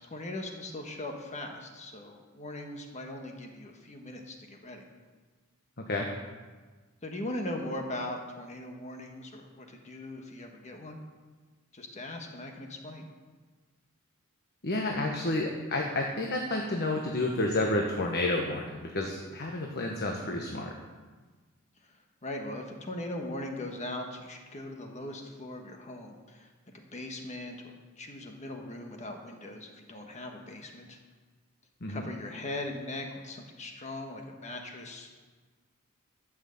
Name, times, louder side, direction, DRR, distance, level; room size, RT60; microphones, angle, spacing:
voice 1, 0.0-4.8 7.0-11.0 11.7-13.1 21.8-31.0 31.9-35.1, left 1 dB, 35° left, 3 dB, 1.3 m, -40 dB
voice 2, 5.8-6.1 14.6-20.7 31.8-32.0, left 2 dB, 50° left, 1 dB, 1.3 m, -30 dB
13.0 x 6.4 x 7.7 m, 1.4 s
head